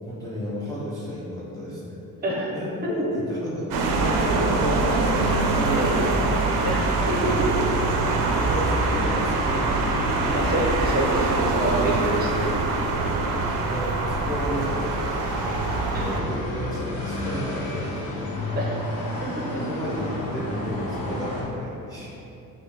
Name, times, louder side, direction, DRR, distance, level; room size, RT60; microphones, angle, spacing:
voice 1, 0.0-2.0 2.5-6.1 7.9-8.0 8.3-10.4 12.2-12.3 13.0-15.3 15.9-18.1 19.5-22.1, equal, 10° left, -8 dB, 0.4 m, -32 dB
voice 2, 2.2-2.5 5.8-6.0 6.6-7.5 10.3-12.4 15.9-16.1 18.6-18.8 19.4-19.5, right 1 dB, 25° right, -3 dB, 0.7 m, -27 dB
sound 1, 3.7-16.2, right 3 dB, 65° right, 0.5 m, -24 dB
sound 2, 8.8-21.4, left 1 dB, 80° left, 1.2 m, -34 dB
4.8 x 3.0 x 3.3 m, 2.9 s
cardioid pair, 150°, 36 cm